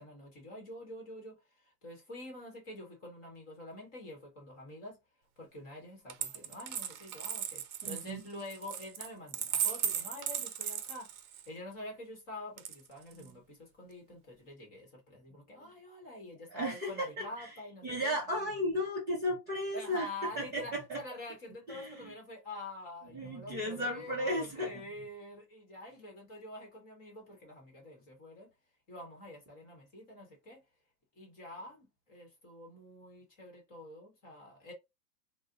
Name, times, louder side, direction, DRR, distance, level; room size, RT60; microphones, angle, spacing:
voice 1, 0.0-5.0 5.4-11.1 11.5-18.2 19.7-28.5 28.9-30.6 31.2-34.7, left 1 dB, 20° left, 0.9 m, -47 dB
Coin (dropping), 6.1-11.5 12.6-13.3, right 9 dB, 60° right, 0.7 m, -36 dB
voice 2, 7.8-8.2 13.1-13.3 16.5-17.5 17.8-20.1 20.4-21.0 21.7-22.1 23.1-24.8, equal, 10° right, 0.5 m, -35 dB
2.4 x 2.0 x 3.7 m
hypercardioid pair, 155°, 49 cm